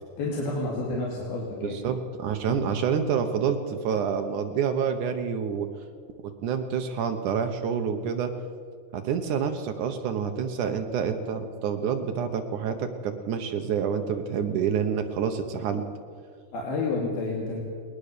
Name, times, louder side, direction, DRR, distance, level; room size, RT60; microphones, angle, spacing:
voice 1, 0.2-1.8 2.5-2.6 16.5-17.6, left 3 dB, 70° left, -3 dB, 4.3 m, -30 dB
voice 2, 1.6-5.7 6.2-8.3 8.9-15.8, right 7 dB, 70° right, 6 dB, 2.0 m, -28 dB
20.5 x 20.0 x 6.8 m, 2.2 s
omnidirectional pair, 4.7 m